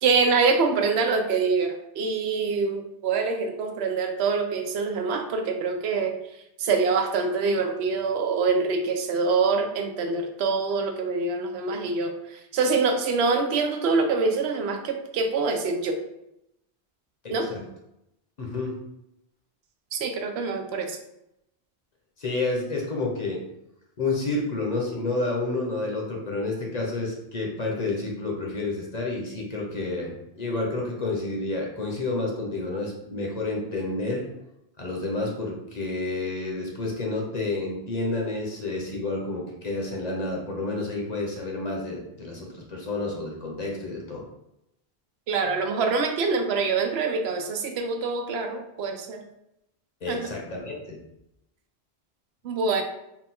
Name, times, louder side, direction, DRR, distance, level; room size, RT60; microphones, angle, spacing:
voice 1, 0.0-6.2 6.6-16.0 17.3-17.5 19.9-21.0 45.3-49.2 50.1-50.2 52.4-52.8, right 4 dB, 80° right, 5 dB, 0.8 m, -25 dB
voice 2, 17.2-17.6 18.4-18.7 22.2-23.4 24.0-34.2 34.8-44.2 50.0-51.0, left 2 dB, 45° left, -1 dB, 0.8 m, -30 dB
3.8 x 2.2 x 4.2 m, 0.85 s
omnidirectional pair, 1.1 m